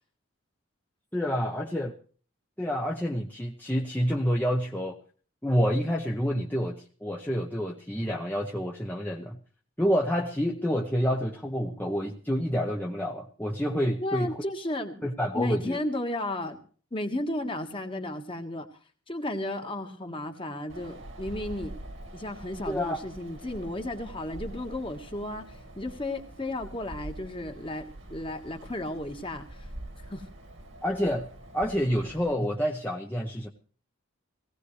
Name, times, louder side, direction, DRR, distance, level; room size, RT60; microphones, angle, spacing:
voice 1, 1.1-1.9 2.6-5.0 5.4-9.4 9.8-14.3 15.0-15.8 22.7-23.0 30.8-31.3 31.5-33.5, equal, 10° left, -1 dB, 0.9 m, -28 dB
voice 2, 14.0-15.0 15.3-16.6 16.9-18.7 19.1-21.8 22.1-25.4 25.8-29.5 30.1-30.2, left 1 dB, 25° left, 5 dB, 1.5 m, -33 dB
Wind, 20.7-32.3, right 1 dB, 65° right, 2.1 m, -44 dB
18.5 x 16.5 x 3.3 m, 0.42 s
head